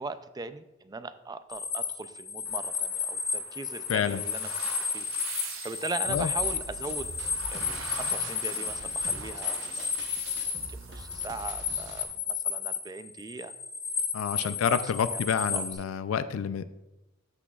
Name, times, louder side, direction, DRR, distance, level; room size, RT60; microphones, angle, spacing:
voice 1, 0.0-4.5 4.8-7.1 7.5-9.9 10.7-13.5 14.4-14.8 15.1-15.6, right 3 dB, 20° right, 12 dB, 0.3 m, -39 dB
sound 1, 1.5-10.7 10.9-15.7, left 6 dB, 15° left, 1.8 m, -32 dB
sound 2, 2.4-12.1, right 5 dB, 85° right, 1.2 m, -45 dB
voice 2, 3.9-4.2 6.1-6.3 14.1-16.6, left 7 dB, 85° left, 12 dB, 0.4 m, -28 dB
sound 3, 6.0-12.0, right 2 dB, 60° right, 0.9 m, -44 dB
13.5 x 6.1 x 2.3 m, 1.0 s
head